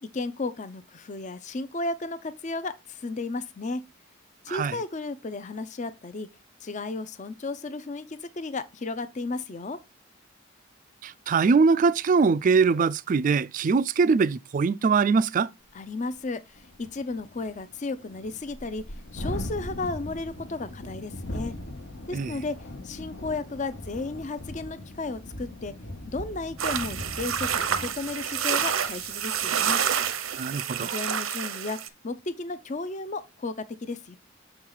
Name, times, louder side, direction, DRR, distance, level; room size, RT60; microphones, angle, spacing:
voice 1, 0.0-3.8 4.4-6.3 6.6-9.8 15.7-18.8 19.1-21.5 22.1-22.6 22.8-25.7 26.1-29.8 30.8-31.8 32.0-34.2, left 3 dB, 35° left, 0.5 m, -34 dB
voice 2, 11.0-15.5 22.1-22.3 30.3-30.9, right 5 dB, 40° right, 0.3 m, -22 dB
Thunderstorm, 15.7-15.8 16.2-16.3 16.5-30.2, left 1 dB, 60° left, 1.0 m, -40 dB
sound 1, 26.6-31.9, right 8 dB, 80° right, 0.7 m, -28 dB
6.4 x 4.6 x 3.9 m
head